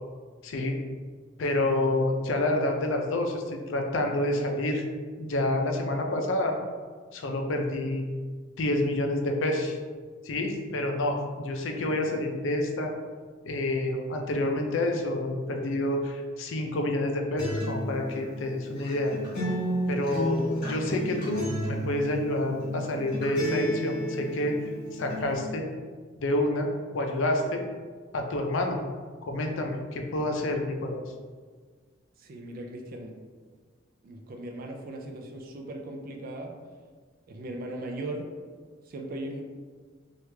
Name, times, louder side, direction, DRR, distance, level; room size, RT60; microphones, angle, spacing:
voice 1, 0.4-0.8 1.4-4.8 5.2-6.6 7.1-8.0 8.6-9.8 10.2-12.9 13.4-19.1 19.9-20.4 20.7-24.6 24.9-25.7 26.2-26.7 26.9-27.6 28.1-28.8 29.2-31.0, left 1 dB, 80° left, 3 dB, 0.5 m, -28 dB
Acoustic guitar, 17.4-25.4, equal, 45° left, 1.4 m, -32 dB
voice 2, 32.2-33.1 34.0-36.5 37.3-38.3 38.9-39.5, right 1 dB, 50° right, 2 dB, 0.4 m, -38 dB
3.1 x 2.4 x 3.2 m, 1.5 s
head